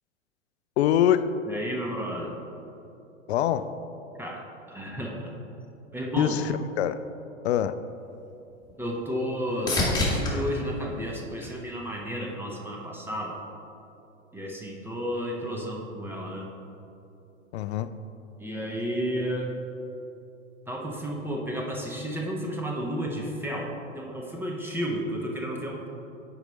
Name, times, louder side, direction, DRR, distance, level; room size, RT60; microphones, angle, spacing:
voice 1, 0.8-1.3 3.3-3.7 6.2-7.0 7.4-7.7 17.5-17.9, left 11 dB, 55° left, 13 dB, 0.4 m, -24 dB
voice 2, 1.5-2.4 4.2-5.3 5.9-6.4 8.8-13.4 14.3-16.5 18.4-19.5 20.7-25.9, equal, 5° right, -1 dB, 0.6 m, -32 dB
sound 1, 7.9-12.2 12.7-13.3 21.1-21.2, left 2 dB, 10° left, 1.4 m, -31 dB
9.0 x 5.0 x 4.0 m, 2.8 s
figure-of-eight pair, 100°, 39 cm